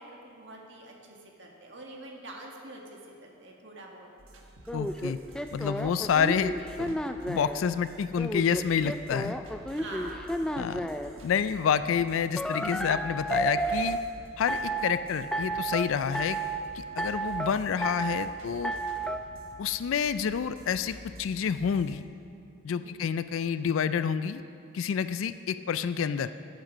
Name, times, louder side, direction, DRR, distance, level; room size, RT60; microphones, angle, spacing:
voice 1, 0.0-4.1 9.7-10.3 22.8-23.1, right 1 dB, 60° right, 0 dB, 1.7 m, -45 dB
sound 1, 4.2-22.0, right 1 dB, 75° right, 1.3 m, -50 dB
voice 2, 4.7-5.2 5.5-7.0 7.3-9.4 10.6-10.9 11.2-14.0 14.4-16.4 16.7-18.7 19.6-22.1 22.6-24.4 24.7-26.3, left 7 dB, 75° left, 12 dB, 0.3 m, -28 dB
sound 2, 4.7-7.6 8.2-11.1 12.4-14.0 14.5-15.0 15.3-15.8 16.1-16.6 17.0-17.5 17.8-18.3 18.6-19.2, right 1 dB, 5° left, 0.3 m, -31 dB
14.0 x 9.1 x 5.1 m, 2.5 s
head